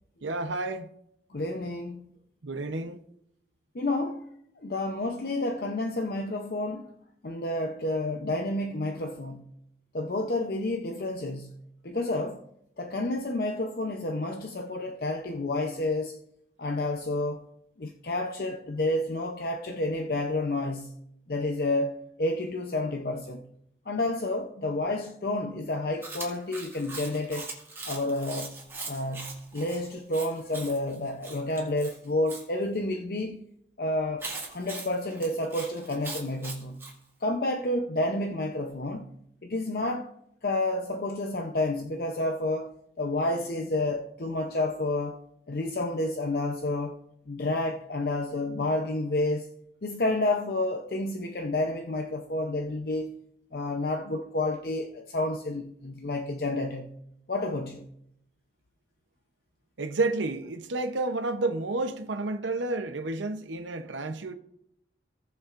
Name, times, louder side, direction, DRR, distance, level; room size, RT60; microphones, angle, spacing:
voice 1, 0.2-0.9 2.4-3.0 59.8-64.3, right 2 dB, 85° right, 0.7 m, -30 dB
voice 2, 1.3-2.1 3.7-4.3 4.6-6.9 7.2-9.5 9.9-12.4 12.8-16.2 16.6-17.5 17.8-21.0 21.3-23.4 23.9-27.5 27.8-28.6 28.9-33.4 33.8-36.8 37.2-39.1 39.4-40.1 40.4-42.7 43.0-45.2 45.5-46.9 47.3-49.5 49.8-53.2 53.5-57.0 57.3-57.9, left 2 dB, 55° left, 0.6 m, -30 dB
Chewing mastication, 26.0-32.4 34.2-36.9, right 3 dB, 15° right, 1.9 m, -41 dB
18.0 x 7.2 x 2.5 m
head